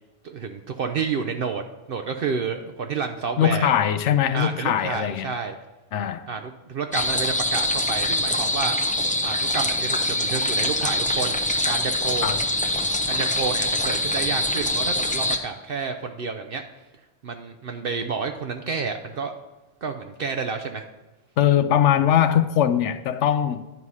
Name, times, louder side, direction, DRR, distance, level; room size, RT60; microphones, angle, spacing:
voice 1, 0.2-1.6 1.9-3.7 4.3-5.6 6.3-8.8 9.2-12.4 13.1-16.6 17.2-19.3 19.8-20.8, right 5 dB, 60° right, 0.7 m, -30 dB
voice 2, 3.4-5.3 5.9-6.3 12.2-12.4 21.4-23.6, left 10 dB, 80° left, 0.9 m, -21 dB
sound 1, 6.9-15.4, left 1 dB, 10° left, 0.5 m, -24 dB
11.0 x 4.8 x 5.5 m
omnidirectional pair, 1.2 m